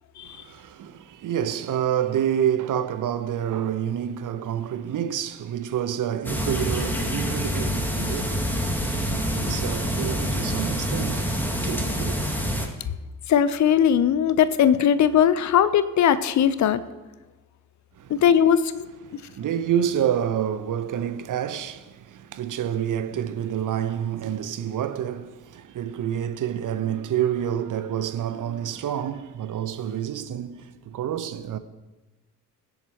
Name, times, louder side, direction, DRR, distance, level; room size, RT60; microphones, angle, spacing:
voice 1, 0.2-8.5 8.9-11.4 11.6-12.2 17.9-18.2 19.0-31.6, right 9 dB, 40° right, 1.1 m, -28 dB
sound 1, 6.2-12.7, equal, 5° left, 2.4 m, -26 dB
voice 2, 13.3-16.8 18.1-18.9, left 9 dB, 35° left, 0.9 m, -19 dB
20.5 x 10.5 x 3.1 m
figure-of-eight pair, 50°, 47 cm